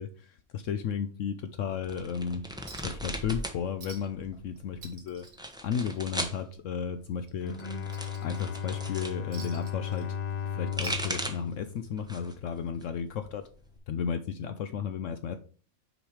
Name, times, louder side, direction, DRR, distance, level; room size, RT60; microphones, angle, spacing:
voice 1, 0.0-2.4 2.8-5.2 5.6-7.5 8.2-10.1 10.4-13.4 13.9-15.4, left 7 dB, 70° left, 9 dB, 0.9 m, -34 dB
sound 1, 1.8-3.6 3.9-4.6 5.2-6.4 7.4-9.2 10.4-11.5 12.0-12.4 12.8-13.8, equal, 5° right, 0.7 m, -37 dB
Chink clink, 2.7-3.0 3.3-3.4 3.8-4.3 4.6-6.3 6.6-6.8 7.2-8.7 9.3-10.4 10.7-11.6 12.7-12.8, right 4 dB, 90° right, 1.9 m, -49 dB
Bowed string instrument, 7.3-12.6, left 7 dB, 85° left, 0.3 m, -36 dB
6.2 x 5.0 x 4.7 m, 0.40 s
omnidirectional pair, 1.5 m